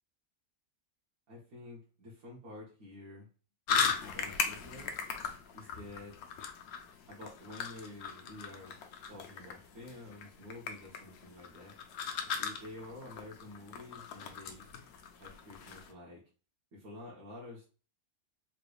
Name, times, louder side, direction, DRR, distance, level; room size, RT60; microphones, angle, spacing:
voice 1, 1.3-3.3 4.0-5.0 5.5-6.2 7.1-8.8 9.0-11.7 12.4-14.7 15.2-16.2 16.7-17.7, left 2 dB, 75° right, -6 dB, 1.5 m, -49 dB
sound 1, 3.7-15.9, left 6 dB, 85° left, 1.1 m, -38 dB
4.0 x 3.2 x 2.3 m, 0.36 s
omnidirectional pair, 1.5 m